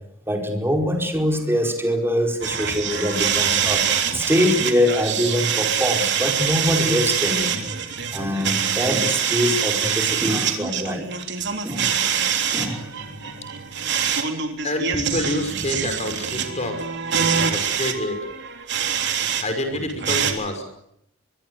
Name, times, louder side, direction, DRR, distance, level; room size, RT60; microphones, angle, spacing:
voice 1, 0.3-3.9 4.1-7.7 8.1-11.0 11.6-11.9 12.5-12.9, equal, 10° right, 3 dB, 4.8 m, -23 dB
sound 1, 2.4-19.4 19.7-20.3, right 7 dB, 60° right, 3.4 m, -24 dB
voice 2, 14.6-17.2 17.5-18.3 19.4-20.6, left 1 dB, 35° left, 7 dB, 5.9 m, -27 dB
24.0 x 23.5 x 8.1 m, 0.75 s
head